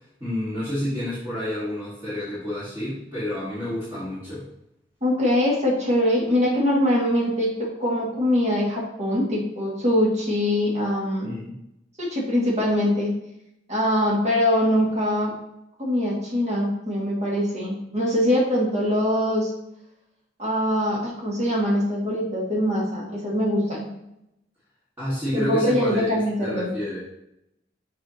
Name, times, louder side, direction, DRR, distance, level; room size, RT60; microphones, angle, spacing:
voice 1, 0.2-4.4 11.2-11.5 25.0-27.0, left 1 dB, 15° right, -11 dB, 1.7 m, -29 dB
voice 2, 5.0-11.3 12.0-13.1 13.7-15.3 15.8-19.5 20.4-23.9 25.3-26.7, left 1 dB, 40° right, -4 dB, 2.1 m, -23 dB
6.6 x 5.0 x 2.9 m, 0.82 s
head